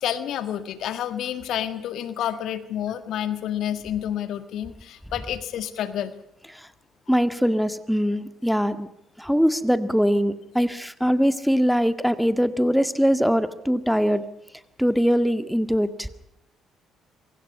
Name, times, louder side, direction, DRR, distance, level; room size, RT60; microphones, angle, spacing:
voice 1, 0.0-6.1, left 10 dB, 60° left, 11 dB, 1.7 m, -29 dB
voice 2, 7.1-8.9 9.2-14.3 14.8-16.1, equal, ahead, 10 dB, 1.9 m, -22 dB
27.0 x 25.0 x 5.5 m, 0.78 s
hypercardioid pair, 50°, 0 cm